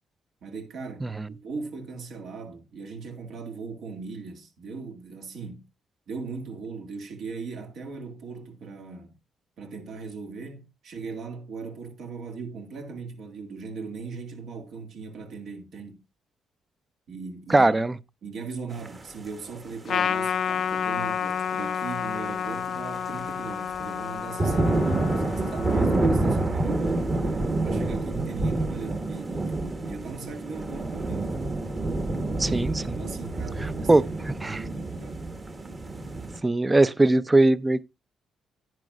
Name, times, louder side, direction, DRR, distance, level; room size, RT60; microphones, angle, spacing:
voice 1, 0.4-5.7 6.1-9.1 9.6-16.0 17.1-17.8 18.2-27.3 27.6-31.5 33.0-35.2, right 4 dB, 70° right, 2.1 m, -39 dB
voice 2, 17.5-17.9 32.4-33.0 33.9-34.0 34.4-34.6 36.4-37.8, right 2 dB, 20° right, 0.5 m, -20 dB
sound 1, 18.8-19.0 20.0-20.1 20.6-20.7 20.9-21.1 21.4-36.4, right 2 dB, 35° right, 1.5 m, -28 dB
Trumpet, 19.9-26.6, left 8 dB, 55° left, 0.4 m, -30 dB
10.5 x 9.9 x 2.4 m
cardioid pair, 90°, 0 cm